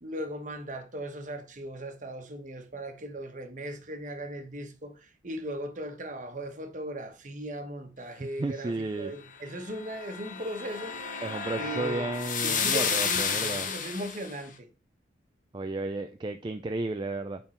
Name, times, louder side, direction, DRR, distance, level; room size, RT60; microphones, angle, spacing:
voice 1, 0.0-11.2 11.6-12.1 12.4-14.7, right 1 dB, 45° right, 1.1 m, -38 dB
voice 2, 8.2-9.1 11.2-13.7 15.5-17.4, right 2 dB, 25° right, 0.4 m, -33 dB
sound 1, 9.7-14.3, left 6 dB, 45° left, 1.0 m, -31 dB
8.8 x 3.8 x 4.2 m
head